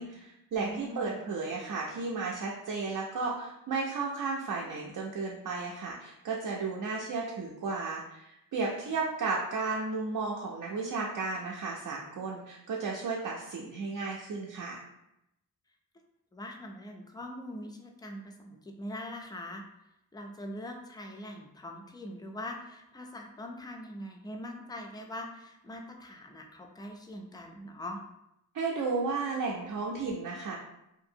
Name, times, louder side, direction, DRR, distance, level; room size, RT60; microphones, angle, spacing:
voice 1, 0.0-14.8 28.5-30.6, right 4 dB, 65° right, -3 dB, 0.5 m, -34 dB
voice 2, 0.6-1.2 8.7-8.9 16.3-19.6 20.1-28.0, left 1 dB, 10° left, 2 dB, 0.3 m, -42 dB
2.7 x 2.6 x 2.6 m, 0.84 s
wide cardioid pair, 100°, 36 cm